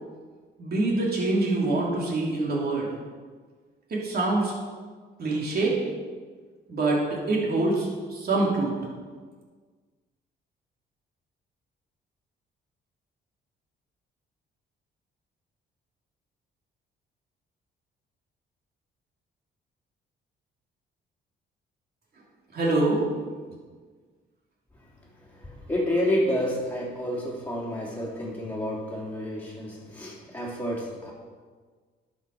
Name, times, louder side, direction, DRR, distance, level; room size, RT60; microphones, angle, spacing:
voice 1, 0.6-2.9 3.9-4.5 5.2-5.8 6.7-8.8 22.5-23.0, right 2 dB, 50° right, -4 dB, 3.1 m, -25 dB
voice 2, 25.2-31.1, left 1 dB, 10° left, -5 dB, 3.3 m, -29 dB
11.5 x 6.2 x 4.9 m, 1.5 s
cardioid pair, 90°, 20 cm